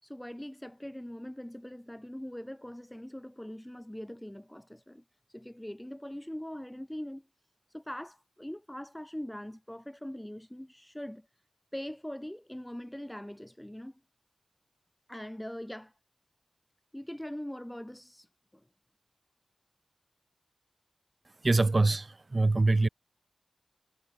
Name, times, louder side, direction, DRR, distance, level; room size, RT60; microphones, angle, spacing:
voice 1, 0.0-5.0 5.3-7.2 7.7-11.3 11.7-14.0 15.1-15.9 16.9-18.3, equal, 10° left, 3.3 m, -42 dB
voice 2, 21.4-22.1 22.3-22.9, right 2 dB, 40° right, 0.4 m, -23 dB
wide cardioid pair, 65°, 0 cm